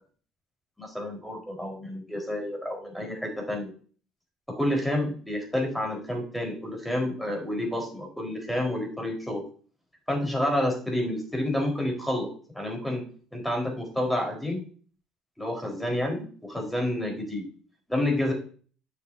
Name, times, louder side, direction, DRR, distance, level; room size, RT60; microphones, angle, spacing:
voice 1, 0.8-3.7 4.5-9.4 10.1-12.3 12.5-13.0 13.3-14.6 15.4-17.5 17.9-18.3, left 1 dB, 5° left, 0 dB, 4.3 m, -29 dB
9.4 x 7.1 x 2.7 m, 0.42 s
hypercardioid pair, 65°, 0 cm